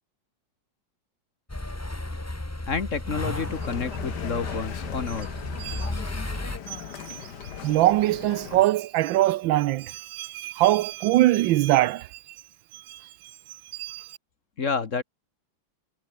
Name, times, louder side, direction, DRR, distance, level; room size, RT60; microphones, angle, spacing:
sound 1, 1.5-6.6, left 1 dB, 10° left, 1.2 m, -34 dB
voice 1, 2.7-5.3 14.6-15.0, left 5 dB, 40° left, 1.7 m, -29 dB
sound 2, 3.3-8.7, left 8 dB, 60° left, 1.9 m, -39 dB
voice 2, 7.6-12.2 12.7-13.0 13.7-14.1, right 16 dB, 80° right, 1.3 m, -23 dB
omnidirectional pair, 2.1 m